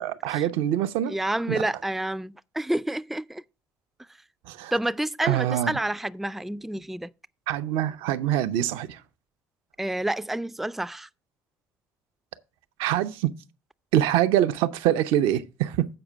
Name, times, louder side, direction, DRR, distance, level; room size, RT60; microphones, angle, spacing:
voice 1, 0.0-1.1 1.5-1.6 4.5-4.7 5.2-5.7 7.5-9.0 12.8-13.3 13.9-15.9, right 12 dB, 75° right, 0.6 m, -24 dB
voice 2, 1.1-3.4 4.7-7.1 9.8-11.1, right 1 dB, ahead, 0.4 m, -29 dB
7.7 x 5.0 x 6.0 m
supercardioid pair, 70°, 9 cm